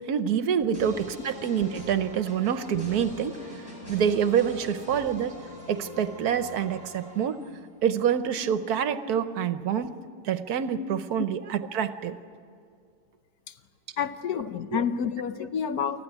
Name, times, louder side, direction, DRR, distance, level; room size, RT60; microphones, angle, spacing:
voice 1, 0.1-3.4 3.9-5.4 5.7-7.4 7.8-9.9 10.2-12.2 14.7-14.8, right 8 dB, 70° right, 11 dB, 1.3 m, -26 dB
sound 1, 0.7-7.7, left 1 dB, 25° left, 5.8 m, -43 dB
voice 2, 14.0-16.0, left 7 dB, 70° left, 11 dB, 1.3 m, -29 dB
25.0 x 14.5 x 9.8 m, 2.2 s
omnidirectional pair, 1.7 m